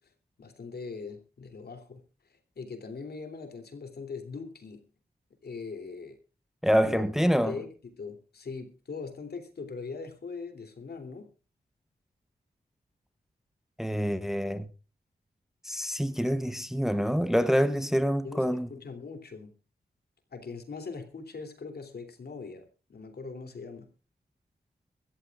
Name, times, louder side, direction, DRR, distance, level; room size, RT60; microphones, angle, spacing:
voice 1, 0.4-2.0 2.3-4.8 5.4-6.2 6.8-7.0 7.4-11.3 17.4-17.8 18.2-19.5 20.3-23.9, left 4 dB, 70° left, 3.1 m, -41 dB
voice 2, 6.6-7.6 13.8-14.7 15.6-18.7, equal, ahead, 0.8 m, -26 dB
23.5 x 14.0 x 2.4 m
wide cardioid pair, 130°, 17 cm